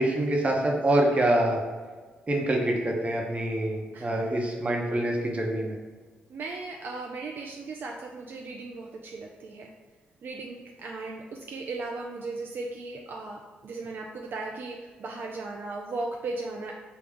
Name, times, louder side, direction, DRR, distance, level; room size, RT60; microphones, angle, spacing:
voice 1, 0.0-1.6 2.3-5.8, right 1 dB, 35° right, 0 dB, 0.9 m, -25 dB
voice 2, 3.9-4.4 6.3-9.7 10.2-16.7, right 3 dB, 65° right, 0 dB, 0.4 m, -37 dB
5.2 x 2.2 x 3.5 m, 1.4 s
cardioid pair, 70°, 4 cm